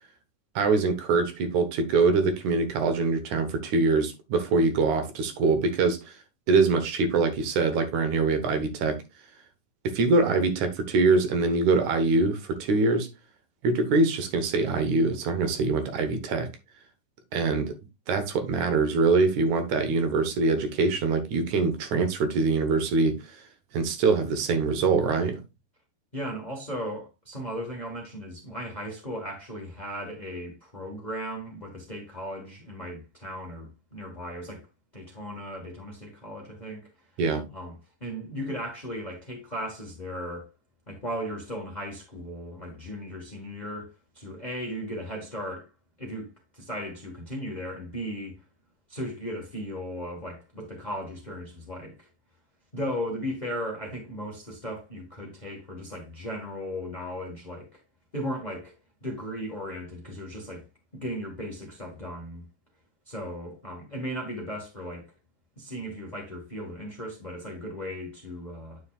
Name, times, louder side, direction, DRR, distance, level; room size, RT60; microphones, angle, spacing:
voice 1, 0.6-6.1 6.5-9.0 9.9-13.1 13.6-16.5 17.3-17.7 18.1-23.4 23.7-25.4 37.2-37.4, right 3 dB, 70° right, 2.4 m, -24 dB
voice 2, 26.1-34.7 34.9-37.1 37.5-40.5 40.9-45.7 46.0-48.4 48.9-52.1 52.7-57.8 58.1-58.7 59.0-60.7 60.9-62.4 63.1-65.1 65.6-68.8, equal, 85° left, 0.4 m, -36 dB
9.5 x 6.3 x 2.4 m
omnidirectional pair, 3.8 m